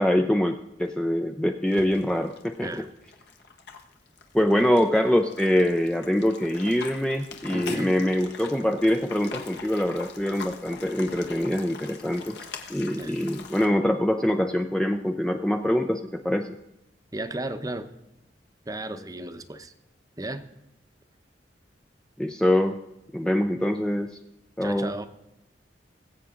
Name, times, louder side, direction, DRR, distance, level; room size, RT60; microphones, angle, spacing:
voice 1, 0.0-2.8 4.3-12.4 12.7-16.6 22.2-22.8 23.1-24.1 24.6-24.9, left 1 dB, 5° left, 5 dB, 0.4 m, -24 dB
sound 1, 1.7-13.7, left 4 dB, 65° left, 1.5 m, -42 dB
voice 2, 7.5-7.9 12.9-13.1 17.1-17.9 18.7-19.7 20.2-20.5 24.6-25.1, right 1 dB, 20° right, 9 dB, 0.8 m, -34 dB
20.5 x 8.3 x 3.8 m, 0.91 s
head